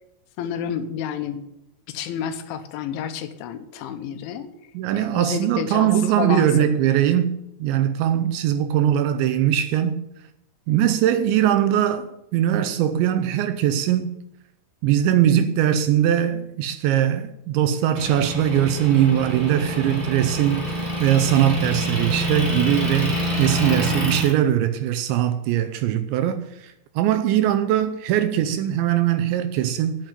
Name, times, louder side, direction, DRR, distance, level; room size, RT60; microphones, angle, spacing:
voice 1, 0.4-1.4 1.9-4.5 4.9-5.9 6.2-6.7, left 8 dB, 80° left, 3.1 m, -30 dB
voice 2, 4.7-10.0 10.7-14.2 14.8-30.1, right 11 dB, 80° right, 2.8 m, -21 dB
Motor vehicle (road) / Engine, 17.9-24.3, equal, 60° right, 0.4 m, -27 dB
9.1 x 7.7 x 9.2 m
omnidirectional pair, 5.6 m